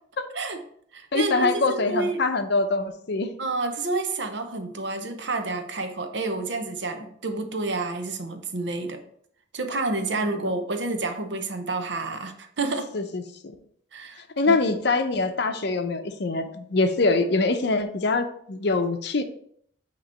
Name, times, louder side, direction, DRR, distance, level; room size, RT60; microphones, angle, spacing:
voice 1, 0.3-0.6 0.9-2.3 3.4-9.0 9.5-13.0 13.9-14.6, right 3 dB, 65° right, 6 dB, 0.8 m, -29 dB
voice 2, 1.1-3.3 10.2-10.5 12.9-13.2 14.4-19.2, left 3 dB, 60° left, 8 dB, 0.6 m, -24 dB
8.7 x 3.0 x 4.3 m, 0.66 s
head